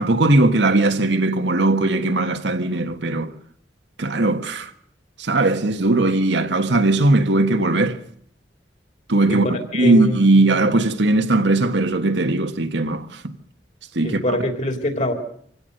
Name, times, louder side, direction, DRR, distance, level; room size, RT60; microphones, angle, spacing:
voice 1, 0.0-3.3 4.0-4.7 5.2-8.0 9.1-9.4 9.7-13.3 13.9-14.4, right 2 dB, 90° right, 1.5 m, -19 dB
voice 2, 9.7-10.2 14.0-15.1, left 1 dB, 45° left, 3.2 m, -23 dB
25.5 x 17.0 x 6.7 m
head